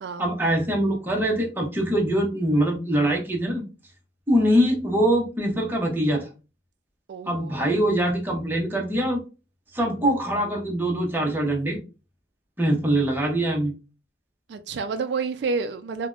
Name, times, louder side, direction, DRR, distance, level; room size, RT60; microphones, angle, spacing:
voice 1, 0.2-3.6 4.3-6.3 7.3-9.2 9.7-11.8 12.6-13.7, right 1 dB, 10° right, 0.7 m, -23 dB
voice 2, 7.1-7.6 14.5-16.1, right 4 dB, 75° right, 0.3 m, -29 dB
3.3 x 2.1 x 2.4 m
head